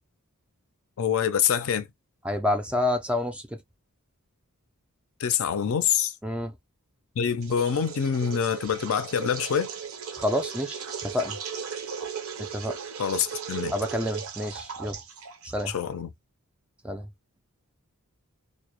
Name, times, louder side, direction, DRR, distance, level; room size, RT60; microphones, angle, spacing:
voice 1, 1.0-1.9 5.2-6.1 7.2-9.7 13.0-13.7 15.7-16.1, left 7 dB, 65° left, 0.4 m, -25 dB
voice 2, 2.2-3.4 6.2-6.5 10.2-11.4 12.4-12.8 13.7-15.0 15.5-15.7 16.8-17.1, left 1 dB, 5° right, 0.3 m, -28 dB
sound 1, 7.4-16.0, right 7 dB, 65° right, 0.5 m, -37 dB
2.1 x 2.0 x 2.9 m
head